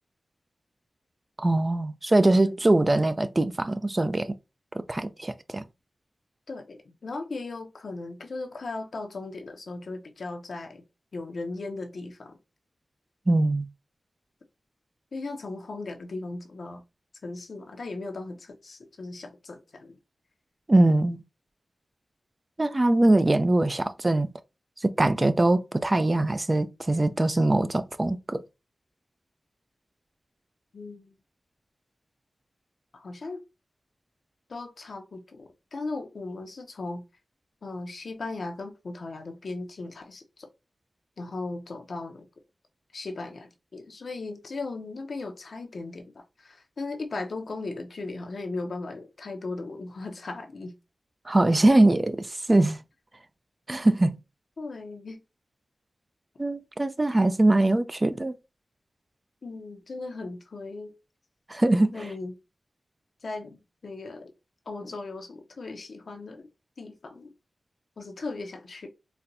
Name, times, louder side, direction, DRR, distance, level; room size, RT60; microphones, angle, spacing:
voice 1, 1.4-4.3 4.9-5.6 13.3-13.7 20.7-21.2 22.6-24.3 24.8-28.4 51.3-52.8 53.7-54.2 56.4-58.3 61.5-61.9, right 2 dB, 30° right, 0.3 m, -22 dB
voice 2, 6.5-10.8 11.1-12.4 15.1-16.8 17.2-20.0 30.7-31.1 32.9-33.4 34.5-37.0 37.6-40.5 41.2-42.3 42.9-50.8 54.6-55.2 59.4-60.9 61.9-62.3 63.2-64.3 64.7-66.5 66.8-67.3 68.0-68.9, left 3 dB, 70° left, 0.6 m, -37 dB
4.1 x 2.2 x 2.6 m
wide cardioid pair, 65°, 0 cm